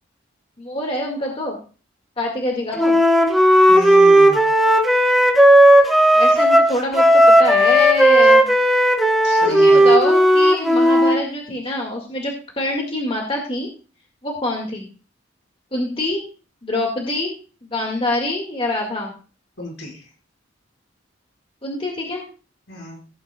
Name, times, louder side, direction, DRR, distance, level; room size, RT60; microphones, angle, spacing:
voice 1, 0.6-1.6 2.2-3.0 6.1-8.5 9.5-13.7 14.2-14.9 15.7-16.3 16.6-17.3 17.7-19.1 21.6-22.2, left 1 dB, 30° left, 0 dB, 1.9 m, -25 dB
Wind instrument woodwind instrument, 2.8-11.2, equal, ahead, 1.1 m, -13 dB
voice 2, 3.7-4.4 9.2-9.9 19.6-20.0 22.7-23.0, left 1 dB, 75° left, -2 dB, 5.4 m, -32 dB
16.5 x 8.7 x 2.3 m, 0.36 s
head